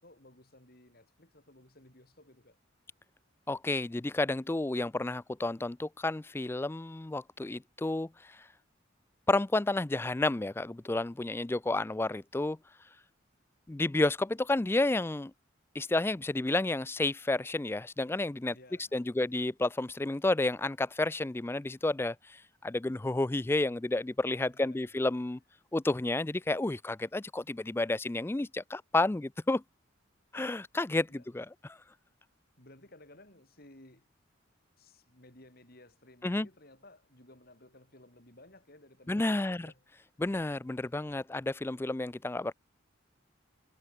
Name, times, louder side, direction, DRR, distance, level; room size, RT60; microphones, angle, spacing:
voice 1, 0.0-2.6 11.7-11.9 18.5-19.4 24.5-24.9 31.1-31.3 32.6-34.1 34.8-39.8, left 1 dB, 50° left, 5.9 m, -57 dB
voice 2, 3.5-8.5 9.3-12.6 13.7-15.3 15.7-18.6 18.9-25.4 25.7-29.6 30.3-31.8 36.2-36.5 39.1-39.7 40.2-42.5, left 2 dB, 10° left, 0.3 m, -31 dB
head